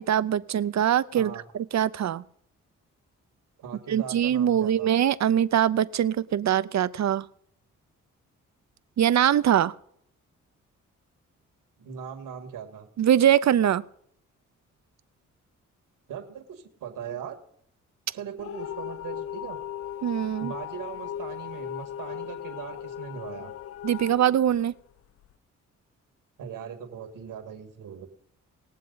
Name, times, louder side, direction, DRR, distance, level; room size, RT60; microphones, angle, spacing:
voice 1, 0.0-2.2 3.9-7.3 9.0-9.7 13.0-13.8 20.0-20.5 23.8-24.7, right 10 dB, 60° right, 16 dB, 0.7 m, -23 dB
voice 2, 3.6-4.9 11.8-12.9 16.1-17.4 18.1-19.6 20.4-23.5 26.4-28.1, right 7 dB, 85° right, 4 dB, 1.9 m, -39 dB
sound 1, 18.4-25.3, left 11 dB, 45° left, 0.4 m, -37 dB
20.5 x 7.4 x 4.0 m, 0.67 s
supercardioid pair, 55°, 32 cm